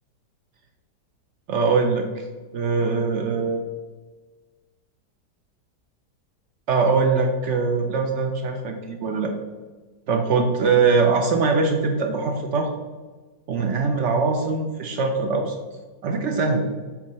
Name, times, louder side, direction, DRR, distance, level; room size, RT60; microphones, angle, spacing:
voice 1, 1.5-2.3 2.5-3.6 6.7-9.3 10.1-12.7 13.5-15.5 16.0-16.6, right 4 dB, 80° right, 3 dB, 0.6 m, -22 dB
4.7 x 3.9 x 5.4 m, 1.3 s
omnidirectional pair, 1.9 m